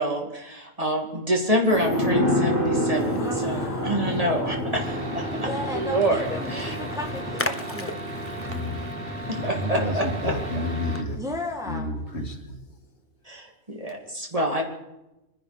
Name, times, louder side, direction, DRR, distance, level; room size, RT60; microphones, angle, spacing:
voice 1, 0.0-4.8 5.1-5.2 5.7-6.8 9.3-10.3 13.2-14.6, right 1 dB, 30° right, 0 dB, 2.6 m, -27 dB
sound 1, 1.7-11.0 11.3-11.4, equal, 80° right, 5.4 m, -29 dB
Splash splatter, 2.5-11.1, left 2 dB, 15° left, 0.5 m, -37 dB
voice 2, 3.1-4.3 5.4-8.0 11.2-11.9, left 1 dB, 5° right, 2 dB, 1.5 m, -34 dB
sound 2, 4.7-11.0, right 3 dB, 55° right, 1.8 m, -37 dB
voice 3, 8.4-8.8 9.4-11.2 11.6-12.6, left 1 dB, 75° left, 3 dB, 2.3 m, -30 dB
26.0 x 10.5 x 5.3 m, 0.97 s
omnidirectional pair, 1.2 m